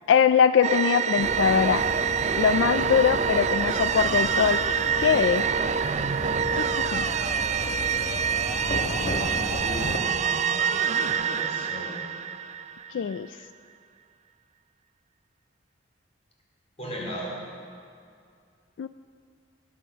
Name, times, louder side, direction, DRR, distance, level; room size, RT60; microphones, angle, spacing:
voice 1, 0.1-1.8 2.4-4.6 5.0-5.5 6.6-7.1 12.9-13.3 18.8-18.9, left 7 dB, 80° left, 12 dB, 0.3 m, -22 dB
sound 1, 0.6-13.1, right 7 dB, 40° right, 0.4 m, -26 dB
sound 2, 1.2-10.0, left 1 dB, 55° left, 1.2 m, -35 dB
voice 2, 8.9-12.0 16.8-17.3, equal, 35° left, -3 dB, 4.0 m, -37 dB
19.0 x 9.2 x 6.7 m, 2.3 s
head